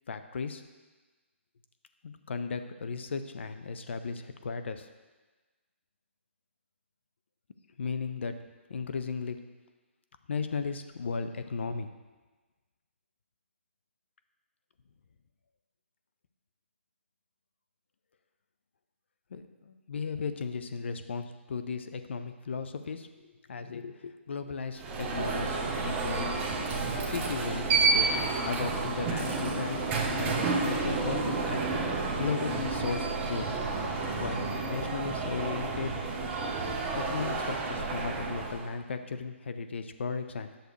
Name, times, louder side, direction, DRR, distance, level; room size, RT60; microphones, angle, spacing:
voice 1, 0.1-0.6 2.0-4.9 7.8-8.3 8.7-9.4 10.3-11.9 19.3-26.4 27.0-33.6 34.1-35.9 36.9-40.5, left 5 dB, 60° left, 8 dB, 0.7 m, -36 dB
Alarm, 24.8-38.7, right 3 dB, 20° right, 0.9 m, -30 dB
10.5 x 6.5 x 3.2 m, 1.3 s
figure-of-eight pair, 140°, 7 cm